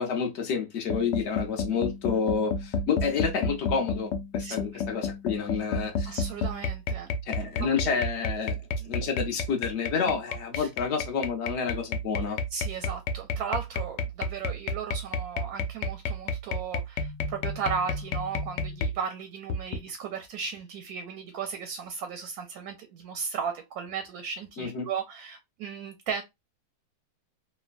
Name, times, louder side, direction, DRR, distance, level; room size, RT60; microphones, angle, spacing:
voice 1, 0.0-6.2 7.3-8.6 8.9-12.4 24.6-24.9, left 6 dB, 55° left, 0.8 m, -29 dB
sound 1, 0.9-19.0 19.5-19.8, left 3 dB, 80° left, 1.2 m, -31 dB
voice 2, 6.1-7.1 8.8-8.9 10.5-10.7 12.5-26.2, right 6 dB, 70° right, 0.9 m, -35 dB
3.2 x 2.1 x 2.5 m
omnidirectional pair, 1.9 m